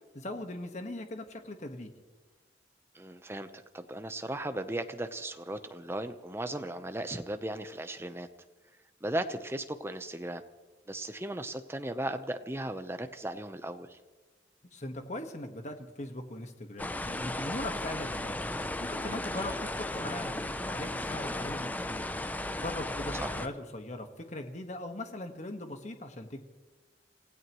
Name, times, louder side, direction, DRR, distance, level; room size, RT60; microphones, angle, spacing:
voice 1, 0.1-1.9 14.7-18.3 18.8-22.1 22.6-26.4, left 1 dB, 40° left, 6 dB, 1.6 m, -40 dB
voice 2, 2.9-8.3 9.0-10.4 10.9-14.0 19.4-19.6 23.1-23.4, right 1 dB, 15° right, 9 dB, 0.9 m, -37 dB
sound 1, 16.8-23.5, left 1 dB, 10° left, 0.6 m, -35 dB
28.0 x 16.0 x 3.1 m, 1.2 s
head